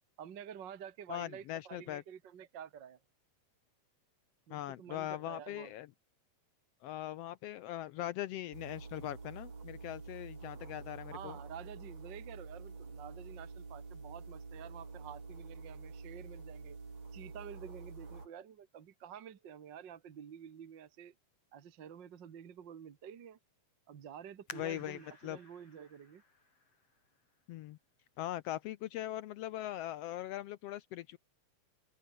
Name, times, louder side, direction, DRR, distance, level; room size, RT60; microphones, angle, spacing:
voice 1, 0.2-3.0 4.5-5.7 11.1-16.8 17.1-21.1 21.5-23.4 23.9-26.2, right 8 dB, 45° right, 1.8 m, -50 dB
voice 2, 1.1-2.0 4.5-5.9 6.8-11.4 24.5-25.4 27.5-27.8 28.2-31.2, left 13 dB, 80° left, 1.5 m, -41 dB
sound 1, 8.5-18.3, right 4 dB, 60° right, 6.7 m, -48 dB
sound 2, 24.5-27.8 28.4-28.5 29.2-29.6 29.9-30.0, left 4 dB, 55° left, 6.6 m, -54 dB
open air
omnidirectional pair, 3.3 m